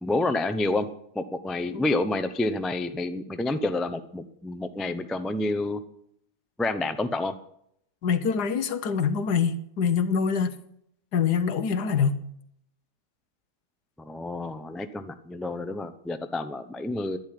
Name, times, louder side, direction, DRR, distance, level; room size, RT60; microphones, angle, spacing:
voice 1, 0.0-0.9 1.1-5.8 6.6-7.3 14.0-17.2, left 2 dB, ahead, 0.4 m, -29 dB
voice 2, 8.0-10.6 11.1-12.1, left 6 dB, 75° left, 1.6 m, -25 dB
11.0 x 10.5 x 9.9 m
omnidirectional pair, 1.8 m